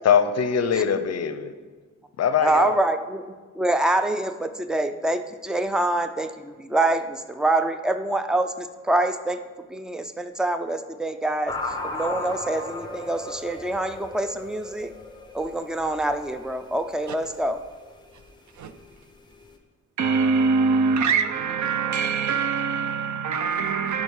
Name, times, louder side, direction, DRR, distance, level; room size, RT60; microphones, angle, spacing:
voice 1, 0.0-1.5 2.2-2.8, left 7 dB, 60° left, 0.6 m, -22 dB
voice 2, 2.4-3.2 3.5-9.4 9.7-14.9 15.3-17.6, right 2 dB, ahead, 0.3 m, -25 dB
sound 1, 11.5-19.5, left 2 dB, 15° left, 0.8 m, -37 dB
voice 3, 20.0-24.0, right 5 dB, 75° right, 0.7 m, -23 dB
11.0 x 5.2 x 5.4 m
wide cardioid pair, 180°, 30 cm